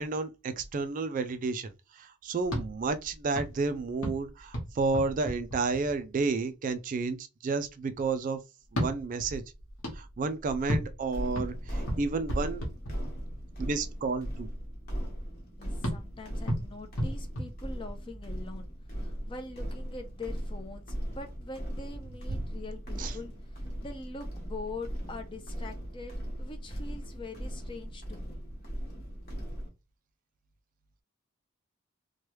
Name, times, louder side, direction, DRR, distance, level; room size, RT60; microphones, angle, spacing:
voice 1, 0.0-8.4 8.7-9.4 9.9-12.6 13.6-14.5 23.0-23.2, right 4 dB, 40° right, 0.3 m, -31 dB
sound 1, 2.4-6.3 8.6-13.5 15.8-18.2, equal, 65° left, 1.2 m, -36 dB
sound 2, 11.1-29.7, equal, 45° left, 1.1 m, -38 dB
voice 2, 15.6-28.4, left 3 dB, 25° left, 0.5 m, -43 dB
3.1 x 2.2 x 3.0 m
head